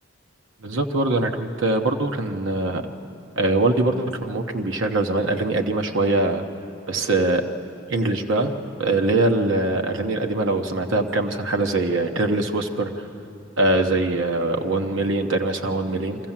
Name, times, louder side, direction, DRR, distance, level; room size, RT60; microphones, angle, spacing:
voice 1, 0.6-2.8 3.4-6.4 6.9-7.4 7.9-8.5 8.8-13.1 13.6-16.2, right 2 dB, 75° right, 4 dB, 1.1 m, -22 dB
24.0 x 15.0 x 7.4 m, 3.0 s
head